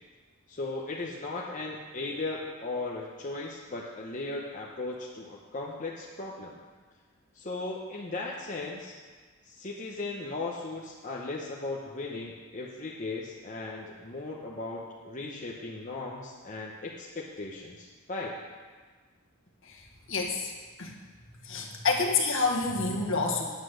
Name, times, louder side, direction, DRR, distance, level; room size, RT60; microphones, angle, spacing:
voice 1, 0.5-6.6 7.3-8.9 9.4-18.3, left 3 dB, 35° left, -2 dB, 1.0 m, -37 dB
voice 2, 20.1-20.5 20.8-20.9 21.5-23.4, left 4 dB, 60° left, 0 dB, 1.6 m, -27 dB
9.7 x 8.4 x 6.4 m, 1.4 s
head